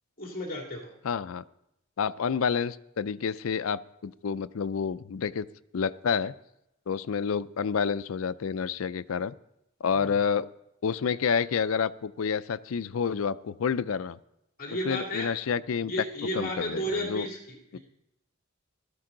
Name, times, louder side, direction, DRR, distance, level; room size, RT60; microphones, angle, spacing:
voice 1, 0.2-0.9 9.9-10.1 14.6-15.3 15.8-17.8, equal, 45° left, 0 dB, 2.6 m, -33 dB
voice 2, 1.0-1.4 2.0-5.5 5.7-6.3 6.9-9.3 9.8-10.5 10.8-14.2 14.8-15.9 16.3-17.3 17.7-17.8, left 6 dB, 80° left, 16 dB, 0.4 m, -29 dB
16.5 x 13.0 x 3.8 m, 0.85 s
head